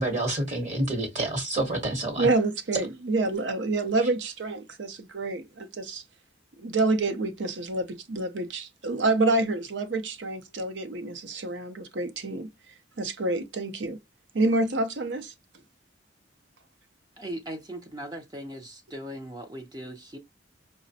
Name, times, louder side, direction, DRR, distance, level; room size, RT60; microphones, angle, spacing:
voice 1, 0.0-2.3, right 1 dB, 40° right, 1.0 m, -28 dB
voice 2, 2.2-6.0 6.6-12.5 13.0-14.0 14.3-15.3, right 2 dB, 70° right, 0.6 m, -27 dB
voice 3, 17.2-20.2, right 1 dB, 20° right, 0.5 m, -39 dB
4.9 x 2.1 x 2.6 m
head